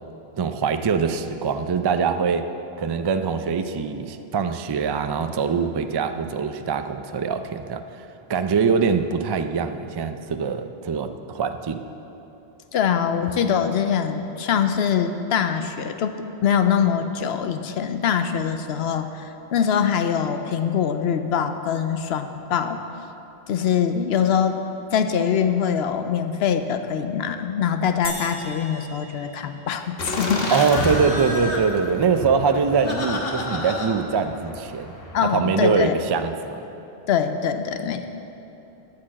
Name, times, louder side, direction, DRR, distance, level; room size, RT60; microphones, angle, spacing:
voice 1, 0.4-2.5 2.8-11.8 30.5-34.9 35.2-36.6, right 5 dB, 45° right, 8 dB, 0.3 m, -23 dB
voice 2, 12.7-22.8 23.5-30.5 35.1-36.0 37.1-38.0, left 7 dB, 80° left, 8 dB, 0.8 m, -23 dB
sound 1, 28.0-30.5, equal, 5° left, 1.3 m, -38 dB
Laughter, 30.0-35.2, left 2 dB, 65° left, 1.4 m, -29 dB
9.5 x 8.6 x 7.5 m, 3.0 s
omnidirectional pair, 1.1 m